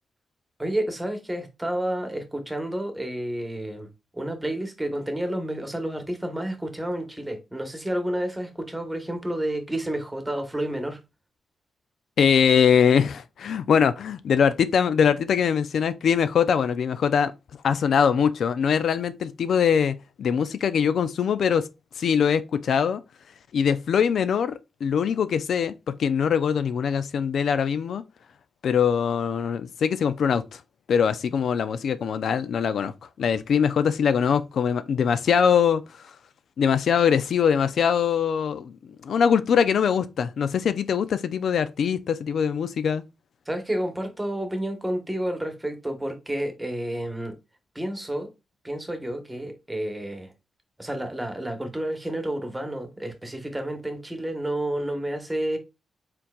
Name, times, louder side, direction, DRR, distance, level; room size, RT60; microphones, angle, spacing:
voice 1, 0.6-11.0 43.4-47.4 47.7-48.3 48.6-50.3 50.8-55.6, right 1 dB, 10° right, 1.1 m, -30 dB
voice 2, 12.2-17.3 17.6-21.7 22.0-23.0 23.5-24.5 24.8-28.0 28.6-30.6 30.9-32.9 33.2-36.0 36.6-38.7 39.0-43.0, left 7 dB, 75° left, 0.3 m, -22 dB
4.4 x 3.9 x 2.3 m
cardioid pair, 105°, 0 cm